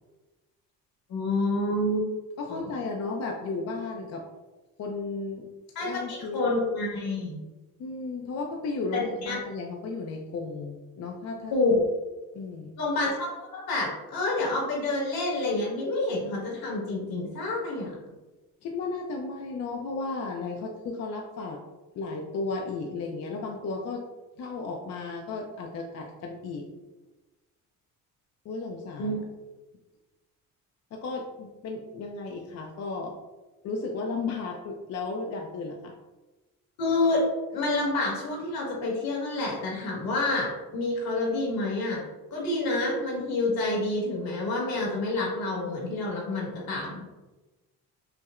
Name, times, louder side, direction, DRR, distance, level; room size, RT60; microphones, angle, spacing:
voice 1, 1.1-2.1 2.5-2.6 5.7-7.4 8.9-9.4 11.5-11.8 12.8-17.9 29.0-29.2 36.8-37.2 37.5-42.0 42.3-47.0, left 2 dB, 75° left, -3 dB, 1.5 m, -28 dB
voice 2, 2.4-4.3 4.8-5.5 5.9-6.4 7.8-11.5 12.3-12.8 18.6-21.6 21.9-24.1 24.4-26.7 28.4-29.2 30.9-33.2 33.6-35.9, left 3 dB, 45° left, 1 dB, 0.4 m, -34 dB
5.6 x 2.1 x 2.4 m, 1.1 s
cardioid pair, 135°, 37 cm